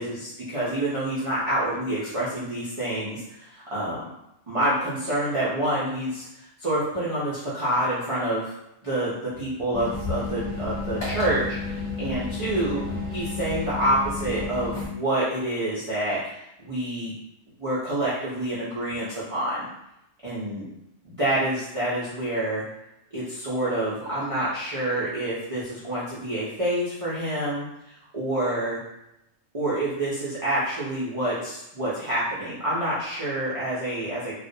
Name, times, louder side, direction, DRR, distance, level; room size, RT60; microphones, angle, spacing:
voice 1, 0.0-4.1 4.5-8.5 8.8-12.8 13.1-17.1 17.6-19.7 20.2-20.6 21.0-22.6 23.1-28.8 29.5-34.3, right 1 dB, 55° right, -10 dB, 0.3 m, -27 dB
sound 1, 9.7-14.9, left 3 dB, 40° left, 0.8 m, -31 dB
2.3 x 2.0 x 2.6 m, 0.85 s
omnidirectional pair, 1.3 m